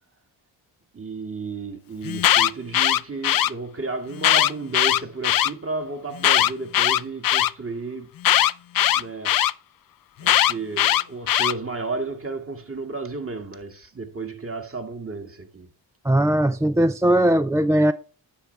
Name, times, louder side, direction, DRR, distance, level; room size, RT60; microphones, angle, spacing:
voice 1, 0.9-8.1 8.9-9.4 10.2-15.7, right 3 dB, 30° right, 2.0 m, -33 dB
Alarm, 2.0-3.5 4.2-5.5 6.2-7.5 8.2-9.5 10.2-11.5, left 12 dB, 50° left, 0.5 m, -19 dB
voice 2, 16.0-17.9, right 1 dB, 5° right, 0.4 m, -19 dB
9.9 x 6.9 x 3.3 m
supercardioid pair, 50°, 47 cm